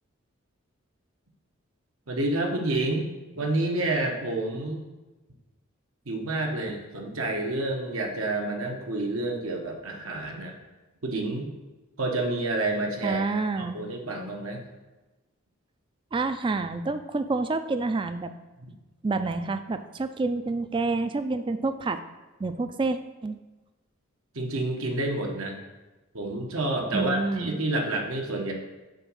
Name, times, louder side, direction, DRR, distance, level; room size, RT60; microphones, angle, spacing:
voice 1, 2.1-3.1 3.4-4.8 6.0-10.5 11.0-11.5 12.0-14.6 24.3-25.5 26.1-28.5, right 2 dB, 80° right, 1 dB, 1.2 m, -29 dB
voice 2, 13.0-13.8 16.1-18.3 19.0-22.0 22.4-23.4 26.9-27.6, right 3 dB, 25° right, 10 dB, 0.3 m, -28 dB
6.6 x 4.1 x 6.3 m, 1.1 s
head